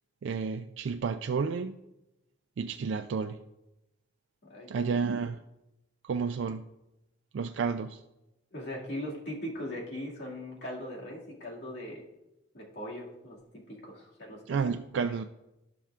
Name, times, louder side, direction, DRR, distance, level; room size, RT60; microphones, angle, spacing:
voice 1, 0.2-1.8 2.6-3.4 4.7-5.4 6.0-6.7 7.3-8.0 14.5-15.2, right 5 dB, 80° right, 7 dB, 0.3 m, -31 dB
voice 2, 4.4-4.8 8.5-12.1 12.5-13.4 13.7-14.6, left 1 dB, 65° left, -3 dB, 2.1 m, -40 dB
15.0 x 5.8 x 2.4 m, 0.93 s
head